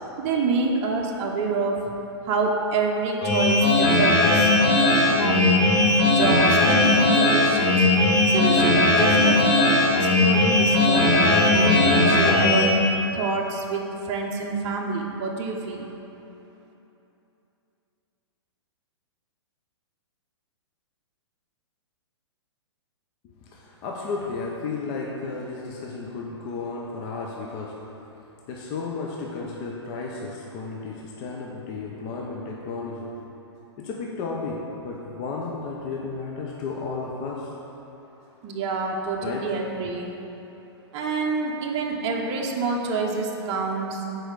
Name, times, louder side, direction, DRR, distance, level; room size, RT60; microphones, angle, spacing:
voice 1, 0.2-1.9 2.2-5.6 6.0-7.9 8.3-12.8 13.1-15.9 38.4-40.1 40.9-44.0, right 4 dB, 35° right, -1 dB, 0.7 m, -27 dB
sound 1, 3.2-12.7, left 2 dB, 50° left, 1.5 m, -18 dB
voice 2, 23.5-27.7 28.5-33.1 33.8-37.5 39.2-39.4, left 4 dB, 35° left, -2 dB, 0.6 m, -33 dB
6.3 x 4.5 x 4.8 m, 2.9 s
hypercardioid pair, 130°, 15 cm